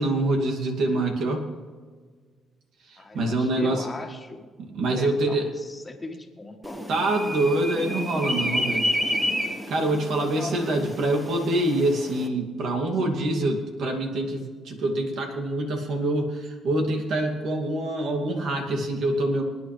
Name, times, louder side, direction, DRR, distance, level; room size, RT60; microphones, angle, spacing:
voice 1, 0.0-1.5 2.9-3.9 4.7-5.4 6.9-8.9 9.7-19.4, right 1 dB, 70° right, 3 dB, 2.5 m, -25 dB
voice 2, 3.0-4.4 4.9-6.8 10.2-10.8, left 2 dB, 25° left, 3 dB, 1.8 m, -39 dB
sound 1, 6.6-12.3, equal, 20° right, 1.7 m, -30 dB
26.0 x 9.5 x 3.4 m, 1.5 s
cardioid pair, 90°, 0 cm